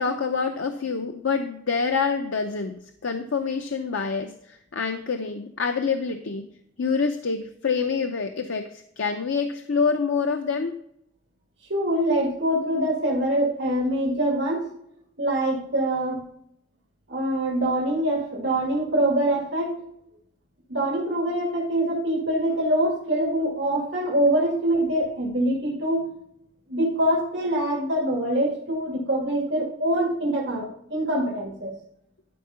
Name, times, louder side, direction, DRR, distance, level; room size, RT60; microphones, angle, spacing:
voice 1, 0.0-6.5 6.8-10.8, left 5 dB, 85° left, 6 dB, 0.7 m, -26 dB
voice 2, 11.7-14.7 15.2-16.3 17.1-19.7 20.7-26.1 26.7-31.7, right 1 dB, 65° right, -3 dB, 2.1 m, -24 dB
12.5 x 4.7 x 5.7 m, 0.72 s
head